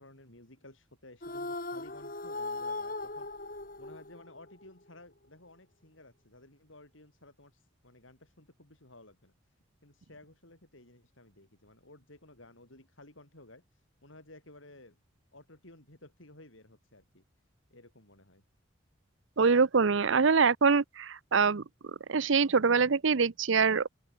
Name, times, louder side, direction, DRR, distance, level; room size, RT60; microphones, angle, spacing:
voice 1, 0.0-9.3 9.8-15.0 15.3-17.2 17.7-18.4, left 2 dB, 75° left, 7.8 m, -55 dB
sound 1, 1.2-4.6, left 2 dB, 45° left, 5.5 m, -38 dB
voice 2, 19.4-21.6 22.1-23.9, right 5 dB, 70° right, 0.7 m, -24 dB
open air
head